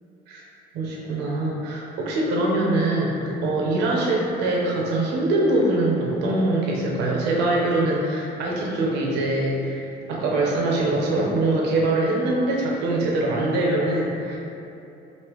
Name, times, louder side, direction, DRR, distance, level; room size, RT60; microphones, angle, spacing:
voice 1, 0.7-14.4, right 2 dB, 85° right, -2 dB, 0.8 m, -23 dB
5.3 x 2.8 x 3.0 m, 2.8 s
cardioid pair, 110°, 17 cm